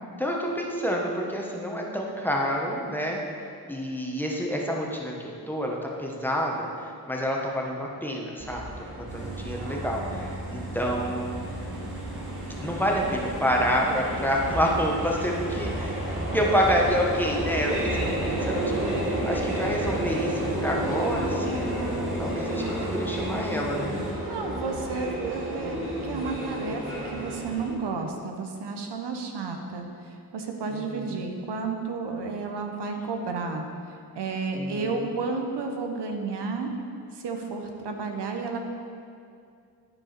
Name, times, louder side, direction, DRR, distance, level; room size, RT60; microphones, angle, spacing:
voice 1, 0.2-3.2 3.7-5.1 5.5-6.7 7.1-11.5 12.6-16.0 16.3-18.0 18.2-21.7 22.2-24.0 30.7-31.2 34.5-35.1, equal, 5° left, -2 dB, 1.2 m, -28 dB
sound 1, 8.4-27.6, right 1 dB, 30° right, 2.3 m, -31 dB
sound 2, 9.1-24.1, right 2 dB, 45° right, 2.2 m, -38 dB
voice 2, 24.2-36.7 37.1-38.6, right 4 dB, 80° right, 3 dB, 1.0 m, -32 dB
12.0 x 4.7 x 4.4 m, 2.4 s
cardioid pair, 80°, 40 cm